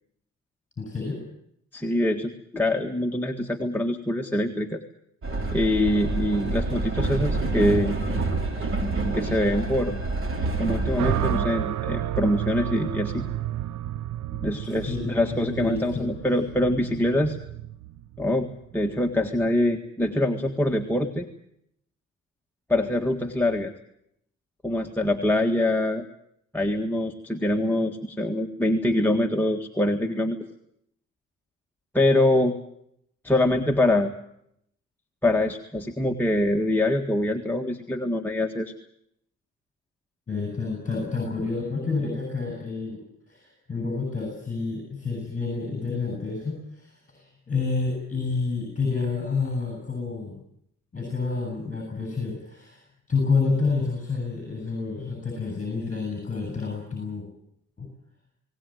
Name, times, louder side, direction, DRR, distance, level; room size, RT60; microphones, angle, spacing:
voice 1, 0.8-1.2 14.4-14.5 14.9-16.1 40.3-50.4 50.9-57.3 57.8-57.9, left 4 dB, 25° left, 2 dB, 7.9 m, -29 dB
voice 2, 1.7-4.8 5.5-8.0 9.1-10.0 10.6-13.3 14.4-17.4 18.2-21.3 22.7-23.7 24.6-26.1 26.5-30.4 31.9-32.6 33.2-34.1 35.2-38.7, left 1 dB, 5° left, 1 dB, 1.7 m, -24 dB
Train, 5.2-11.4, right 2 dB, 45° right, 4.2 m, -27 dB
sound 1, 11.0-19.2, right 13 dB, 75° right, 0.8 m, -31 dB
20.0 x 18.5 x 9.3 m, 0.74 s
cardioid pair, 90°, 30 cm